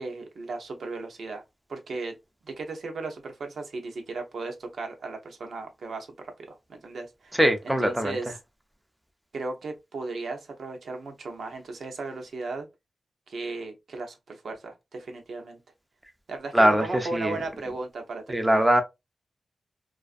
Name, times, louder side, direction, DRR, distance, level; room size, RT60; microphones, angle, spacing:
voice 1, 0.0-1.4 1.7-2.2 2.4-7.4 7.6-8.3 9.3-12.7 13.3-15.6 16.3-18.6, right 3 dB, 80° right, 0.6 m, -36 dB
voice 2, 7.3-8.1 16.5-17.4 18.3-18.8, equal, 5° right, 0.4 m, -22 dB
2.4 x 2.4 x 2.4 m
wide cardioid pair, 120°, 0 cm